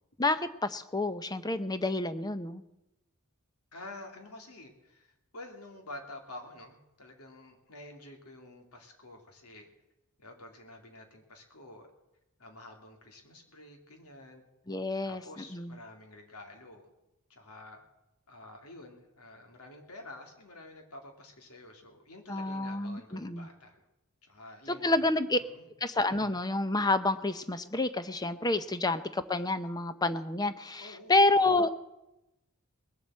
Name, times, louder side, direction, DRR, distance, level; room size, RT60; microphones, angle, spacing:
voice 1, 0.2-2.6 14.7-15.8 22.3-23.5 24.7-25.4 25.8-31.7, left 2 dB, 20° left, 12 dB, 0.7 m, -29 dB
voice 2, 3.7-9.7 10.2-11.9 12.4-14.5 15.0-16.9 17.3-17.8 18.3-23.8 24.2-25.1 25.4-25.7 30.8-31.2, left 2 dB, 90° left, 3 dB, 2.6 m, -49 dB
20.0 x 7.8 x 7.5 m, 0.92 s
head